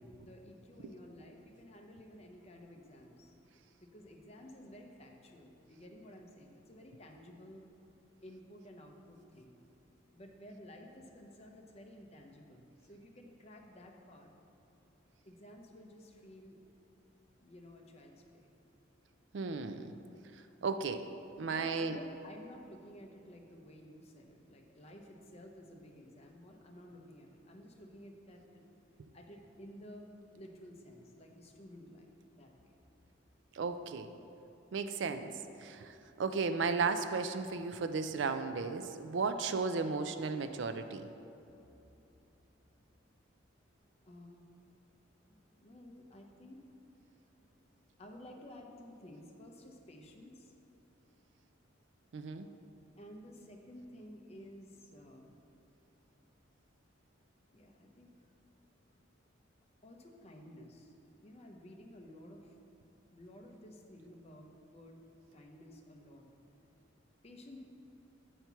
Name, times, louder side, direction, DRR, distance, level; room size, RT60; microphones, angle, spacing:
voice 1, 0.2-3.3 3.7-7.6 8.2-9.5 10.1-14.3 15.2-16.6 17.4-18.5 21.4-28.7 29.1-30.1 30.3-32.1 32.3-32.7 39.4-39.6 44.1-44.4 45.3-46.6 48.0-50.5 53.0-55.4 57.5-58.1 59.8-60.9 61.2-62.5 63.1-65.0 65.3-66.3 67.2-67.6, left 1 dB, 30° left, 2 dB, 0.7 m, -53 dB
voice 2, 19.3-19.9 20.3-21.1 21.4-22.0 33.5-34.1 34.7-35.3 35.6-41.1 52.1-52.5, right 4 dB, 65° right, 9 dB, 0.4 m, -35 dB
8.1 x 4.4 x 5.7 m, 2.9 s
head